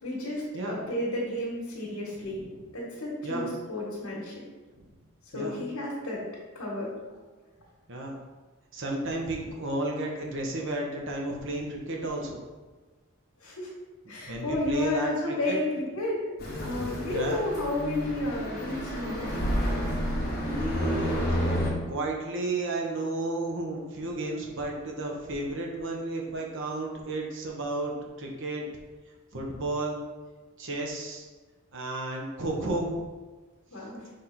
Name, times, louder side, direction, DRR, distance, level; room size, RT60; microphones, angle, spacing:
voice 1, 0.0-2.4 2.7-4.3 5.3-6.2 6.5-6.9 13.4-13.7 14.1-16.2 16.6-19.4 33.7-34.1, left 1 dB, 85° left, -5 dB, 1.6 m, -32 dB
voice 2, 7.9-8.2 8.7-12.4 14.1-15.1 15.5-15.6 17.0-17.5 20.4-27.9 28.2-28.8 29.3-30.0 30.6-31.3 31.7-33.0, right 2 dB, 60° right, 0 dB, 1.1 m, -33 dB
sound 1, 16.4-21.7, equal, 45° left, 1.5 m, -30 dB
6.4 x 3.6 x 4.3 m, 1.3 s
head